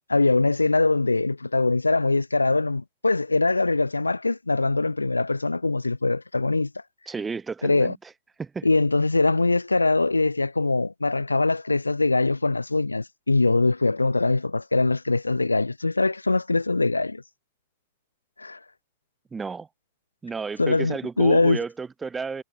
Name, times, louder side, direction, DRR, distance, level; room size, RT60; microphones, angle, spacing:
voice 1, 0.1-6.7 7.6-7.9 8.6-17.2 18.4-18.6 20.6-21.6, left 3 dB, 80° left, 0.4 m, -22 dB
voice 2, 7.1-8.1 8.4-8.7 19.3-19.7 20.2-22.4, right 5 dB, 15° right, 3.8 m, -32 dB
figure-of-eight pair, 90°, 0 cm